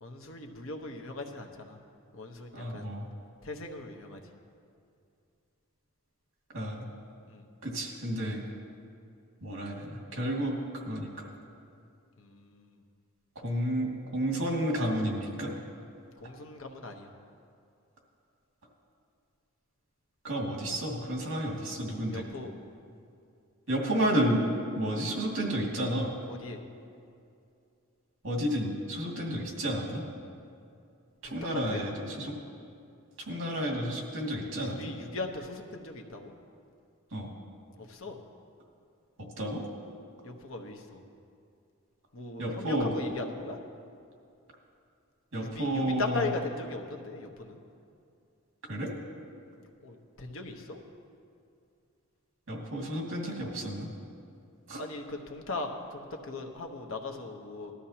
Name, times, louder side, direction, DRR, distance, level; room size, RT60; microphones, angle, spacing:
voice 1, 0.0-1.8 2.1-2.9 3.4-4.2 7.3-7.5 12.2-12.8 16.2-17.1 22.1-22.5 26.3-26.6 31.2-31.8 34.4-36.3 37.8-38.2 40.2-41.0 42.1-43.6 45.4-47.6 49.8-50.8 54.8-57.7, left 2 dB, 65° left, 3 dB, 1.1 m, -39 dB
voice 2, 2.5-3.1 6.5-6.8 7.6-8.4 9.4-11.3 13.4-15.5 20.2-22.2 23.7-24.4 24.8-26.1 28.2-30.0 31.2-32.4 33.2-34.9 37.1-37.3 39.4-39.6 42.4-43.0 45.3-46.3 48.7-48.9 52.5-53.9 54.7-54.8, equal, 60° right, -1 dB, 2.3 m, -31 dB
19.0 x 12.5 x 2.9 m, 2.4 s
head